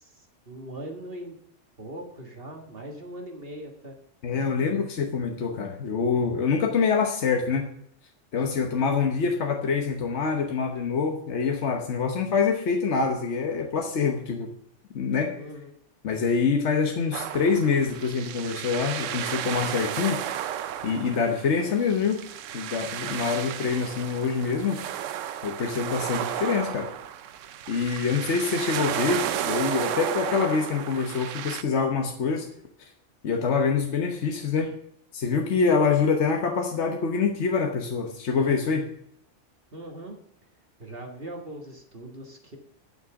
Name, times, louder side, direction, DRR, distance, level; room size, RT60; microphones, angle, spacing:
voice 1, 0.0-1.4 1.8-4.0 8.4-8.5 15.4-15.7 27.9-28.3 39.7-40.2 40.8-42.6, right 1 dB, 50° right, 1 dB, 2.0 m, -40 dB
voice 2, 4.2-7.7 8.3-14.5 14.9-15.4 16.0-20.2 20.8-22.2 22.5-24.8 25.4-26.9 27.7-32.5 33.2-34.7 35.1-38.9, left 5 dB, 70° left, 3 dB, 1.3 m, -25 dB
sound 1, 17.1-31.6, right 10 dB, 90° right, 1.0 m, -33 dB
12.0 x 6.3 x 7.0 m, 0.73 s
omnidirectional pair, 1.3 m